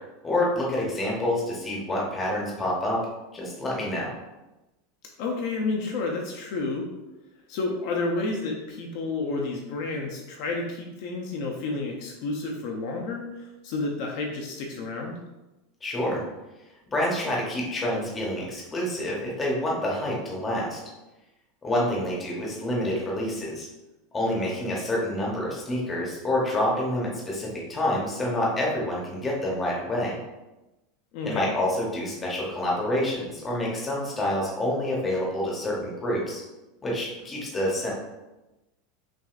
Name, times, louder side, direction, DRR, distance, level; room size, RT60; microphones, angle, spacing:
voice 1, 0.2-3.1 3.3-4.1 15.8-16.2 16.9-20.8 21.6-23.7 24.1-30.1 31.2-36.4 36.8-37.9, left 1 dB, 10° left, -3 dB, 0.8 m, -27 dB
voice 2, 5.2-6.9 7.5-15.2 31.1-31.4, left 3 dB, 50° left, 0 dB, 0.5 m, -30 dB
5.9 x 2.5 x 2.4 m, 1.0 s
supercardioid pair, 175°, 0 cm